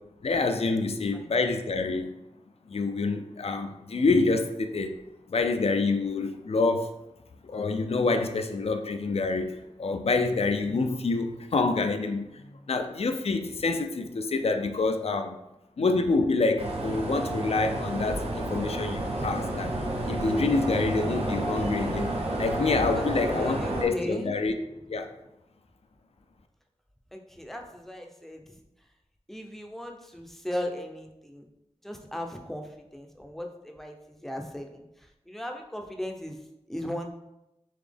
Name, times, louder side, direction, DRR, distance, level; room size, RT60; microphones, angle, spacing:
voice 1, 0.2-2.2 2.7-5.0 5.3-6.9 7.4-15.4 15.8-24.5 24.9-25.1, left 3 dB, 60° left, 6 dB, 0.4 m, -27 dB
sound 1, 16.6-23.9, right 1 dB, 55° right, 0.7 m, -30 dB
voice 2, 22.9-24.4 27.1-28.6 29.3-31.5 31.8-36.4 36.7-37.1, left 1 dB, ahead, 2 dB, 0.6 m, -37 dB
4.1 x 2.8 x 3.4 m, 0.91 s
wide cardioid pair, 65°, 12 cm